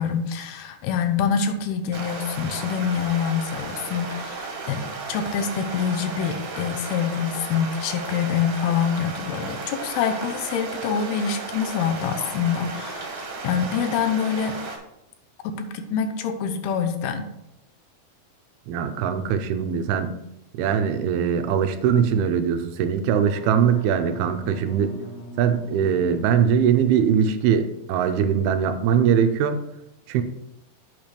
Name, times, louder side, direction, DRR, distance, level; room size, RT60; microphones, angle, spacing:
voice 1, 0.0-13.1 13.4-14.6 15.4-17.2, left 7 dB, 85° left, 8 dB, 2.7 m, -26 dB
sound 1, 1.9-14.8, right 3 dB, 70° right, 2.9 m, -34 dB
voice 2, 18.7-20.1 20.6-24.9 25.4-29.6 30.1-30.2, right 7 dB, 85° right, 8 dB, 2.6 m, -21 dB
Wind instrument woodwind instrument, 23.1-27.7, right 1 dB, 60° left, 1.9 m, -41 dB
8.1 x 5.1 x 4.4 m, 0.87 s
omnidirectional pair, 4.4 m